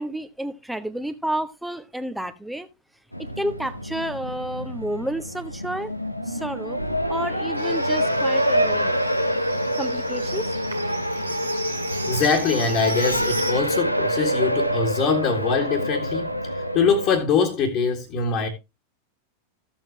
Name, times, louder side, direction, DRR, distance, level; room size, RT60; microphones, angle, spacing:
voice 1, 0.0-2.7 3.4-5.9 6.3-6.8 7.1-8.9 9.8-10.5, right 1 dB, 5° right, 1.0 m, -30 dB
Race car auto racing, 3.1-17.2, equal, 90° left, 0.8 m, -26 dB
Livestock farm animals working animals, 7.6-13.5, right 3 dB, 80° right, 2.3 m, -36 dB
voice 2, 12.1-18.5, left 5 dB, 35° left, 1.8 m, -23 dB
15.0 x 7.3 x 2.9 m
figure-of-eight pair, 90°, 0 cm